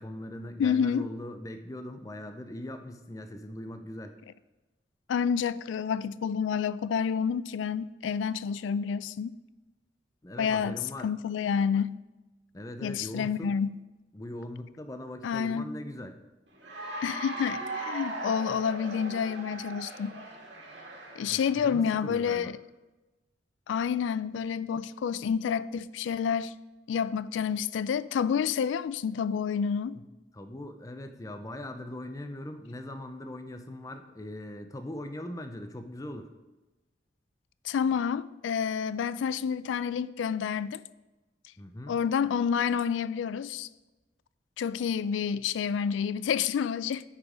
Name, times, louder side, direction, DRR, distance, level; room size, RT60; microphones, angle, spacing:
voice 1, 0.0-4.1 10.2-11.1 12.5-13.5 14.1-16.2 21.3-22.5 29.9-30.1 30.3-36.3 41.6-41.9, left 1 dB, 15° left, 0.5 m, -40 dB
voice 2, 0.6-1.1 5.1-9.3 10.4-12.0 12.8-13.7 15.2-15.7 17.0-20.2 21.2-22.5 23.7-26.6 26.9-30.0 37.6-40.8 41.9-43.7 44.6-47.0, left 7 dB, 80° left, 0.3 m, -29 dB
Cheering / Applause, 16.6-21.7, right 2 dB, 65° right, 1.7 m, -39 dB
9.1 x 4.9 x 4.9 m
head